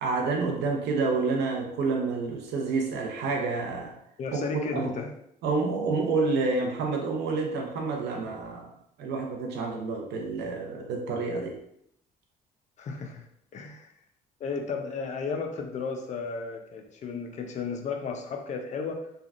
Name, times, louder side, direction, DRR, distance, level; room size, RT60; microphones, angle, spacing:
voice 1, 0.0-4.0 4.3-4.4 4.7-4.9 5.4-8.7 9.0-11.6, right 4 dB, 80° right, 1 dB, 0.7 m, -28 dB
voice 2, 4.2-5.1 12.8-13.3 13.5-13.9 14.4-19.0, left 5 dB, 45° left, 4 dB, 0.5 m, -34 dB
3.3 x 2.3 x 2.4 m, 0.73 s
cardioid pair, 110°, 17 cm